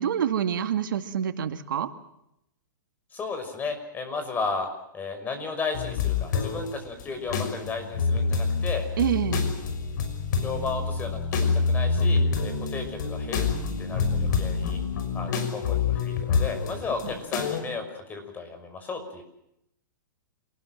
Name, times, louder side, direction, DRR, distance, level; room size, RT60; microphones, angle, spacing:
voice 1, 0.0-1.9 9.0-9.5, right 9 dB, 75° right, 8 dB, 2.4 m, -26 dB
voice 2, 3.1-4.7 4.9-8.9 10.4-13.5 13.8-14.8 15.1-19.2, left 4 dB, 15° left, 7 dB, 5.7 m, -34 dB
sound 1, 5.7-6.7 7.0-17.6, left 5 dB, 60° left, 5.7 m, -27 dB
27.5 x 19.5 x 7.7 m, 0.80 s
hypercardioid pair, 145°, 11 cm